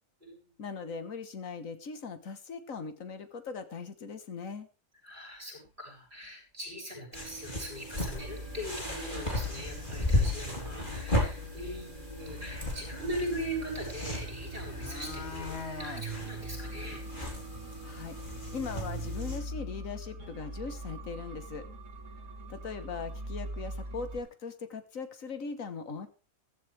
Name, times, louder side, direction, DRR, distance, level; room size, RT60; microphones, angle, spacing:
voice 1, 0.6-4.7 17.8-18.2 18.5-21.7 22.5-26.1, left 5 dB, 70° left, 10 dB, 1.8 m, -40 dB
voice 2, 5.0-17.0, equal, 35° right, 0 dB, 7.5 m, -40 dB
sound 1, 5.6-5.7 6.2-6.3 6.7-6.8 7.7-7.8 8.4-8.7 8.9-9.0 9.4-9.8 11.2-11.3 11.6-11.7 14.0-14.1 14.4-16.1 16.5-16.6 16.9-17.0 17.4-17.5 17.8-17.9 20.7-20.8 21.2-21.3 22.1-22.2 22.6-22.8 23.1-23.9 24.2-24.3, left 4 dB, 50° left, 2.2 m, -44 dB
sound 2, 7.1-19.4, left 1 dB, 35° left, 3.7 m, -35 dB
sound 3, 8.2-24.2, right 1 dB, 60° right, 2.2 m, -42 dB
15.0 x 13.5 x 3.4 m, 0.32 s
omnidirectional pair, 1.4 m